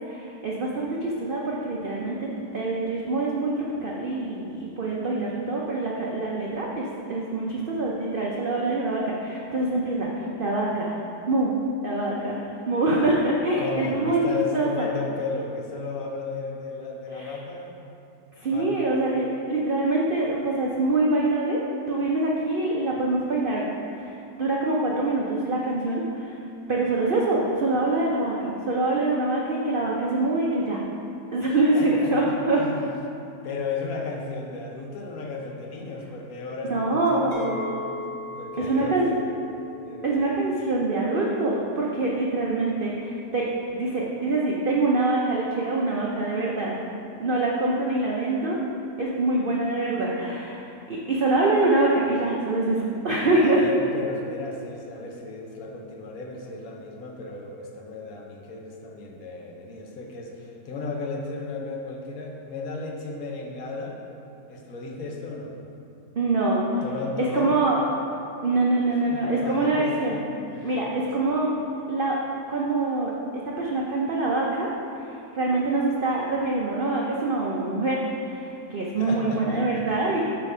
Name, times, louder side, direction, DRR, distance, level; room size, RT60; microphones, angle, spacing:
voice 1, 0.1-11.0 11.3-11.6 11.8-14.9 17.1-17.4 18.4-21.6 21.9-23.7 23.9-26.4 26.7-30.8 31.3-32.6 36.6-37.6 38.6-39.1 40.0-43.4 43.7-46.8 47.2-48.6 49.0-53.6 66.2-66.8 67.3-67.8 68.4-70.2 70.6-71.5 71.9-72.2 72.5-73.1 73.4-80.3, right 2 dB, 80° right, -3 dB, 0.4 m, -25 dB
voice 2, 13.6-17.9 18.4-18.9 31.5-32.9 33.4-37.7 38.1-39.2 39.8-40.3 53.4-64.0 64.5-65.6 66.8-67.6 69.1-70.2 70.5-71.1 79.0-79.9 80.2-80.3, left 3 dB, 65° left, 1 dB, 1.1 m, -34 dB
Chink clink, 37.3-42.5, left 3 dB, 25° left, 1.2 m, -39 dB
8.2 x 3.4 x 5.4 m, 2.6 s
omnidirectional pair, 1.8 m